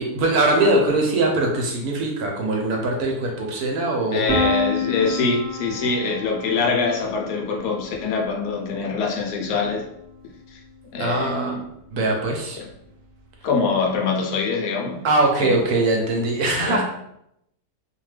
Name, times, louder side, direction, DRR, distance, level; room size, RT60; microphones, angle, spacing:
voice 1, 0.0-4.2 11.0-11.5 11.9-12.6 15.0-16.8, right 2 dB, 75° right, 0 dB, 1.0 m, -21 dB
voice 2, 4.1-9.8 10.9-11.6 12.6-12.7 13.4-15.0 15.4-15.6 16.7-16.8, left 4 dB, 75° left, 2 dB, 1.1 m, -24 dB
Piano, 4.3-10.1, left 3 dB, 15° left, 0.6 m, -30 dB
2.8 x 2.1 x 3.2 m, 0.78 s
omnidirectional pair, 1.8 m